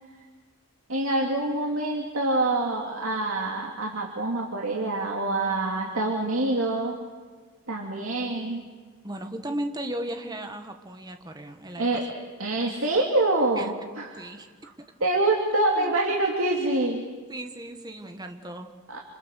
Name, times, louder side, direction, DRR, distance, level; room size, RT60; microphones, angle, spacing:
voice 1, 0.9-7.0 7.7-8.7 11.8-12.0 12.4-14.3 15.0-17.0 18.9-19.0, right 2 dB, 65° right, -1 dB, 2.7 m, -26 dB
voice 2, 9.0-12.0 13.6-13.7 14.1-14.5 15.7-15.9 17.3-18.7, right 1 dB, 20° right, 5 dB, 1.7 m, -36 dB
27.5 x 27.0 x 6.6 m, 1.5 s
head